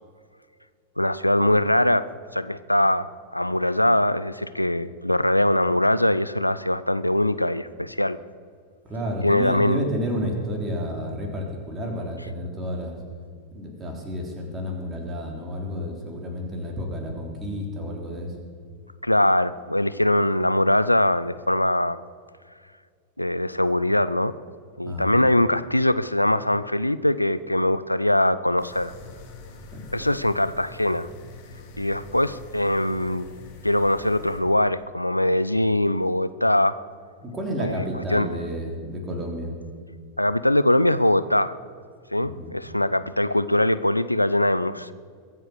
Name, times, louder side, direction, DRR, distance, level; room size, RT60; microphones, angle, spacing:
voice 1, 1.0-2.1 2.3-8.2 9.2-9.9 19.0-22.0 23.2-24.3 24.8-28.9 29.9-31.1 31.8-33.3 33.6-36.8 37.6-38.3 40.2-41.6 42.1-44.9, left 1 dB, 85° left, 15 dB, 0.4 m, -22 dB
voice 2, 8.9-12.9 13.5-18.3 24.8-25.2 29.7-30.1 37.2-39.5 42.2-42.5, equal, 20° right, 1 dB, 3.4 m, -31 dB
sound 1, 28.6-34.4, left 3 dB, 50° left, 2.9 m, -44 dB
22.5 x 7.9 x 6.6 m, 2.1 s
figure-of-eight pair, 90°, 0 cm